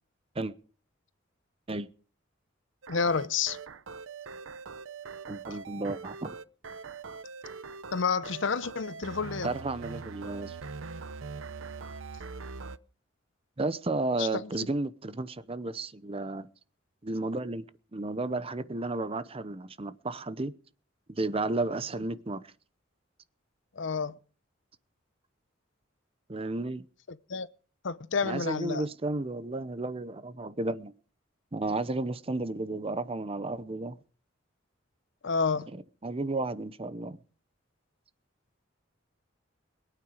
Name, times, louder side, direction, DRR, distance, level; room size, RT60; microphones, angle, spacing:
In game, 2.8-12.8, right 4 dB, 85° right, 0.7 m, -42 dB
voice 1, 2.9-3.6 7.9-9.5 14.2-14.7 23.8-24.1 27.3-27.5 27.8-28.8 35.2-35.7, left 5 dB, 65° left, 0.7 m, -29 dB
voice 2, 5.3-6.4 9.4-10.6 13.6-16.5 17.0-17.6 17.9-20.5 21.1-22.4 26.3-26.8 28.2-30.9 31.5-34.0 36.0-37.2, right 2 dB, 30° right, 0.8 m, -33 dB
22.0 x 9.1 x 5.0 m
head